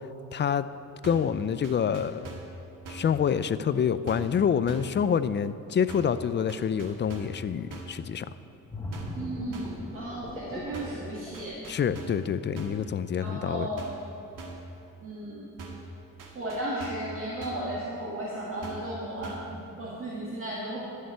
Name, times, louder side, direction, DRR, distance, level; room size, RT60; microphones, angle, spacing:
voice 1, 0.3-0.7 1.0-2.3 2.9-8.3 11.7-13.7, left 7 dB, 35° left, 14 dB, 0.4 m, -27 dB
sound 1, 1.0-1.4 1.6-2.6 2.9-3.2 4.1-4.4 4.7-5.0 5.9-6.2 6.5-7.4 7.7-8.0 8.9-9.2 9.5-9.8 10.7-11.1 11.3-12.3 12.6-12.9 13.8-14.1 14.4-14.7 15.6-15.9 16.2-17.1 17.4-17.7 18.6-18.9 19.2-19.6, right 3 dB, 70° right, 1.8 m, -42 dB
sound 2, 8.7-12.3 12.7-12.9, left 1 dB, 10° left, 1.4 m, -39 dB
voice 2, 9.2-11.6 13.1-13.9 15.0-15.5 16.3-20.9, right 1 dB, 40° right, -6 dB, 2.1 m, -35 dB
12.5 x 6.6 x 9.0 m, 2.8 s
cardioid pair, 135°, 33 cm